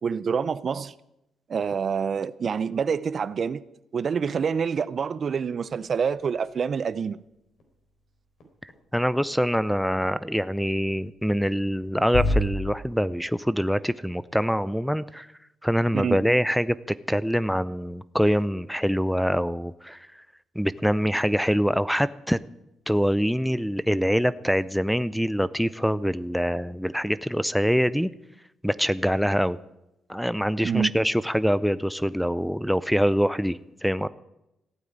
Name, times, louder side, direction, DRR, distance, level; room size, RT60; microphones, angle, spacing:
voice 1, 0.0-0.9 1.5-3.6 3.9-7.2 15.9-16.2 30.6-30.9, right 6 dB, 45° right, 0.6 m, -27 dB
sound 1, 5.7-12.4, left 3 dB, 65° left, 3.8 m, -36 dB
voice 2, 8.6-15.3 15.6-16.7 17.1-20.1 20.6-22.4 22.9-28.1 28.6-29.6 30.1-34.1, equal, ahead, 0.5 m, -24 dB
15.5 x 9.2 x 8.8 m
cardioid pair, 90°, 0 cm